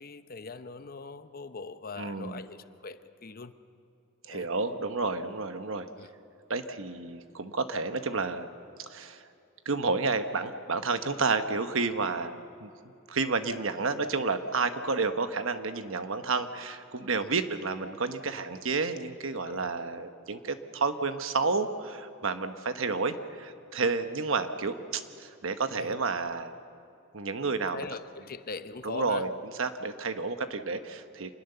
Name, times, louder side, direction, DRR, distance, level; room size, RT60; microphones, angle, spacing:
voice 1, 0.0-3.6 4.3-4.5 6.0-6.1 17.1-17.4 19.4-19.7 25.8-26.0 27.7-29.3, left 4 dB, 45° left, 11 dB, 0.8 m, -41 dB
voice 2, 2.0-2.4 4.3-5.9 6.5-8.5 8.9-9.2 9.6-12.4 12.6-12.7 13.1-26.5 27.1-27.8 28.8-29.3 29.6-31.3, right 4 dB, 65° right, 9 dB, 1.1 m, -30 dB
26.5 x 20.5 x 6.9 m, 2.7 s
head